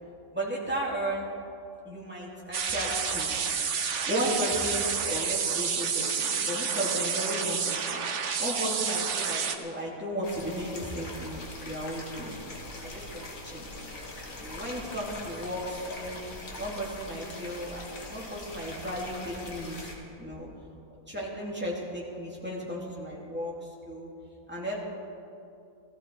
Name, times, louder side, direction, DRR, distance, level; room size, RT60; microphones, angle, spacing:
voice 1, 0.3-1.3 1.8-3.5 4.1-8.0 8.4-12.4 12.8-13.9 14.4-16.2 16.6-19.8 20.2-20.5 21.1-24.1 24.5-24.8, equal, 5° right, -5 dB, 2.7 m, -34 dB
sound 1, 2.5-9.6, right 6 dB, 55° right, 1.1 m, -29 dB
sound 2, 10.2-19.9, left 2 dB, 60° left, 2.2 m, -42 dB
16.0 x 15.0 x 4.7 m, 2.6 s
omnidirectional pair, 1.6 m